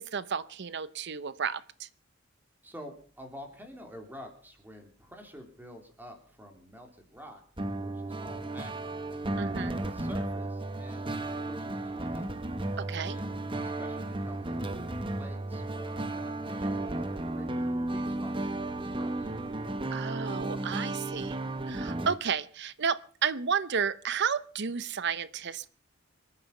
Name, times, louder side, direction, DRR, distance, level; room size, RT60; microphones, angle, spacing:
voice 1, 0.0-1.9 9.4-9.8 12.8-13.2 19.9-21.4 21.7-25.7, right 6 dB, 55° right, 16 dB, 0.7 m, -32 dB
voice 2, 2.6-7.4 7.8-9.0 9.3-12.3 13.0-19.3, equal, 10° right, 3 dB, 3.4 m, -49 dB
sound 1, 7.6-22.2, right 2 dB, 25° right, 1.2 m, -34 dB
26.5 x 9.8 x 5.4 m, 0.43 s
head